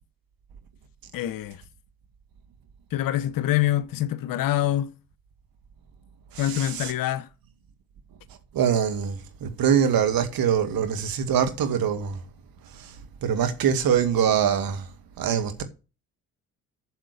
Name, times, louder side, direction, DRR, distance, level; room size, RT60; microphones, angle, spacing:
voice 1, 1.1-1.6 2.9-4.9 6.4-7.3, left 13 dB, 50° left, 0.9 m, -25 dB
voice 2, 6.3-6.9 8.5-12.2 12.7-12.9 13.2-14.8 15.2-15.6, right 8 dB, 50° right, 2.1 m, -24 dB
8.0 x 7.2 x 8.2 m
figure-of-eight pair, 50°, 43 cm